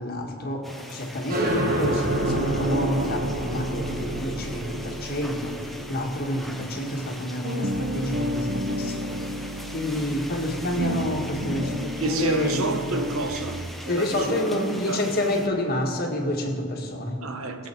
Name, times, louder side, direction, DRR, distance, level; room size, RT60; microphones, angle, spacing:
voice 1, 0.0-5.6 5.9-9.1 9.7-13.1 13.9-17.2, left 1 dB, 45° left, 1.6 m, -28 dB
sound 1, 0.6-15.5, equal, ahead, 0.8 m, -41 dB
sound 2, 1.3-8.6, right 1 dB, 45° right, 1.7 m, -30 dB
sound 3, 1.9-7.1 7.4-13.7, equal, 60° right, 0.8 m, -32 dB
voice 2, 10.7-11.2 12.0-15.1 17.2-17.7, right 3 dB, 80° right, 1.1 m, -30 dB
20.5 x 7.7 x 4.5 m
head